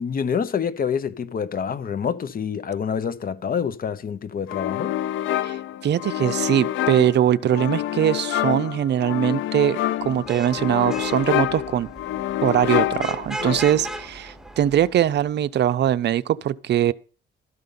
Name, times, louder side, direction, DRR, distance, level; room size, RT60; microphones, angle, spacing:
voice 1, 0.0-4.9, left 7 dB, 45° left, 1.0 m, -27 dB
sound 1, 4.5-14.0, left 13 dB, 80° left, 0.6 m, -27 dB
voice 2, 5.8-11.9 12.4-16.9, right 10 dB, 60° right, 0.6 m, -21 dB
Vehicle horn car horn honking / Traffic noise roadway noise, 10.0-15.3, right 1 dB, ahead, 1.0 m, -37 dB
12.5 x 5.4 x 6.8 m
cardioid pair, 90°, 20 cm